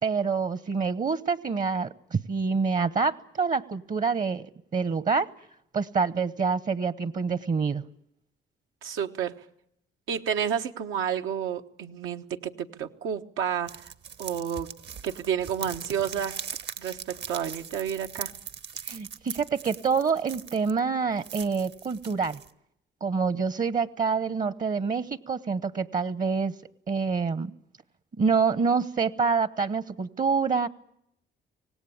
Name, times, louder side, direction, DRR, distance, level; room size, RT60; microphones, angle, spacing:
voice 1, 0.0-5.3 5.7-7.8 18.9-22.4 23.0-26.5 26.9-27.5 28.2-30.7, right 5 dB, 40° right, 16 dB, 0.9 m, -26 dB
voice 2, 8.8-9.3 10.1-13.9 14.2-14.7 15.0-16.4 16.8-18.3, right 8 dB, 85° right, 5 dB, 1.3 m, -30 dB
sound 1, 13.7-20.8 21.2-22.5, right 7 dB, 60° right, 1.3 m, -40 dB
25.0 x 18.5 x 8.7 m, 0.76 s
cardioid pair, 90°, 20 cm